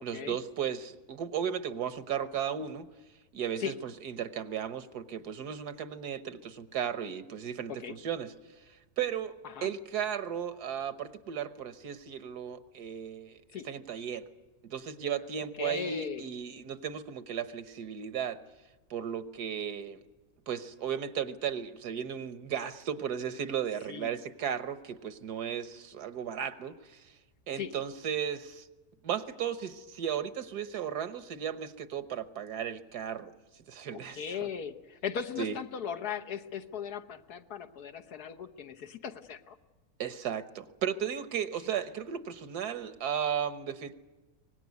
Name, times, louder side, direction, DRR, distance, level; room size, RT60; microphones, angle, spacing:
voice 1, 0.0-2.9 3.3-8.3 9.0-14.3 14.6-18.4 18.9-20.0 20.5-27.1 27.5-28.7 29.0-33.3 33.7-34.4 35.4-35.6 40.0-43.9, right 8 dB, 85° right, 11 dB, 1.6 m, -35 dB
voice 2, 15.6-16.3 23.9-24.1 27.5-27.7 33.9-39.6, left 7 dB, 80° left, 6 dB, 1.6 m, -38 dB
23.5 x 19.0 x 9.5 m, 1.2 s
omnidirectional pair, 1.6 m